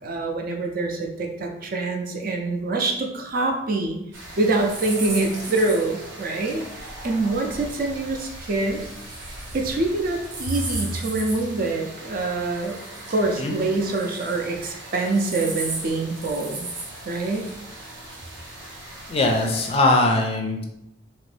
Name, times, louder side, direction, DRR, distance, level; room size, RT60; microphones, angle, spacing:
voice 1, 0.0-4.0 4.4-8.9 9.5-12.8 13.1-16.7 17.1-17.5, right 2 dB, 50° right, 2 dB, 0.5 m, -25 dB
sound 1, 4.1-19.8, right 2 dB, 80° right, 0.9 m, -37 dB
voice 2, 19.1-20.6, left 2 dB, 30° left, 2 dB, 0.4 m, -21 dB
2.8 x 2.6 x 3.2 m, 0.84 s
head